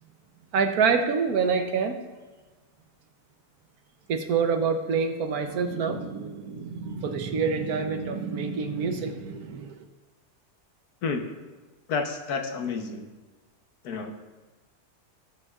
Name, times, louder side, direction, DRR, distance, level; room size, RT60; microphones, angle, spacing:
voice 1, 0.5-2.0 4.1-9.8, right 5 dB, 70° right, 5 dB, 1.2 m, -26 dB
voice 2, 11.9-13.1 13.8-14.1, left 4 dB, 70° left, 5 dB, 1.4 m, -30 dB
18.5 x 7.8 x 2.4 m, 1.3 s
omnidirectional pair, 1.7 m